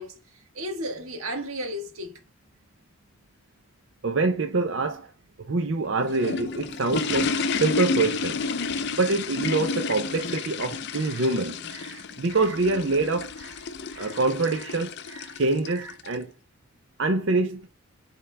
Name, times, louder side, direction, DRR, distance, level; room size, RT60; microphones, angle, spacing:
voice 1, 0.0-2.2, equal, 90° right, 1.6 m, -34 dB
voice 2, 4.0-5.1 5.4-8.4 8.9-13.6 13.9-16.3 17.0-17.7, right 3 dB, 60° right, 0.6 m, -26 dB
sound 1, 5.8-16.1, left 4 dB, 55° left, 0.6 m, -31 dB
8.9 x 3.7 x 3.3 m
head